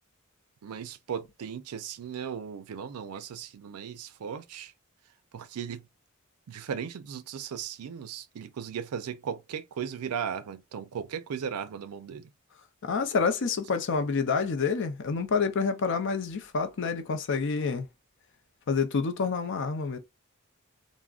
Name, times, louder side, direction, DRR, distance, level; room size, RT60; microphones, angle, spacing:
voice 1, 0.6-4.7 5.3-5.9 6.5-12.3, right 7 dB, 85° right, 0.4 m, -37 dB
voice 2, 12.8-17.9 18.7-20.0, left 5 dB, 55° left, 0.5 m, -28 dB
3.5 x 2.0 x 2.3 m
head